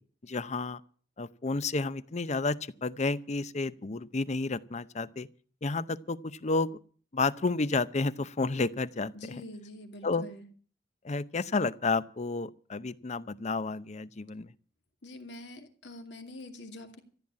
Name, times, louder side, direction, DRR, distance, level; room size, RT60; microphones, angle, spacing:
voice 1, 0.2-0.8 1.2-5.3 5.6-6.8 7.1-9.1 10.0-10.3 11.0-14.5, left 3 dB, 40° left, 0.7 m, -31 dB
voice 2, 9.1-10.5 15.0-17.0, left 1 dB, 70° left, 2.5 m, -45 dB
14.5 x 8.9 x 8.6 m
head